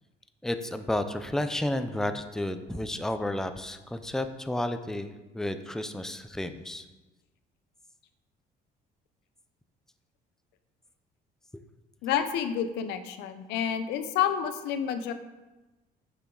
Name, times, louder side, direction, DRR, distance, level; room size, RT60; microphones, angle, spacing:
voice 1, 0.4-6.8, left 1 dB, 5° left, 9 dB, 0.6 m, -32 dB
voice 2, 12.0-15.1, left 8 dB, 85° left, 10 dB, 0.8 m, -29 dB
8.9 x 8.1 x 4.0 m, 1.1 s
cardioid pair, 110°, 17 cm